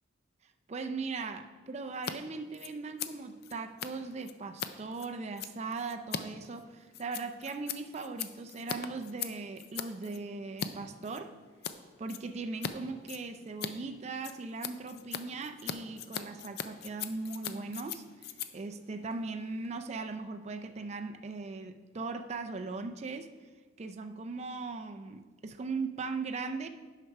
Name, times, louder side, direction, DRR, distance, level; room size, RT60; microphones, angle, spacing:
voice 1, 0.7-11.3 12.0-23.3 23.8-26.7, right 4 dB, 35° right, 7 dB, 0.4 m, -39 dB
Scissors, 1.9-2.1 2.4-10.7 11.0-11.8 12.1-12.7 13.0-19.8, left 8 dB, 50° left, 0.4 m, -41 dB
7.9 x 5.9 x 5.4 m, 1.4 s
head